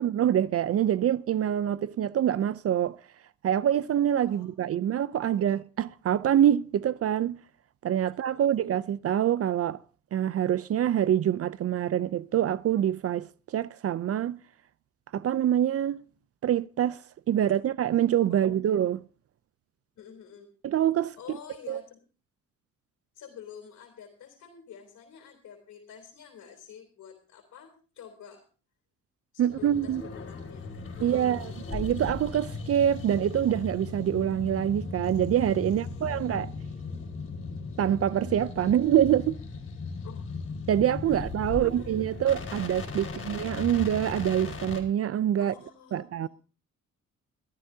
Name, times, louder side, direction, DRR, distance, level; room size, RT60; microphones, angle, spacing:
voice 1, 0.0-3.0 3.4-7.4 7.8-9.8 10.1-14.4 15.1-16.0 16.4-17.0 17.3-19.0 20.6-21.2 21.7-21.8 29.4-30.0 31.0-36.5 37.8-39.4 40.7-45.5 45.9-46.3, right 10 dB, 50° right, 0.5 m, -25 dB
voice 2, 18.3-18.7 20.0-20.5 21.2-22.0 23.1-28.4 29.3-31.6 35.7-36.3 40.0-40.3 41.1-41.9 45.4-46.3, left 8 dB, 70° left, 3.5 m, -49 dB
sound 1, 29.5-44.8, left 3 dB, 45° left, 5.0 m, -37 dB
20.0 x 13.5 x 2.8 m
cardioid pair, 90°, 30 cm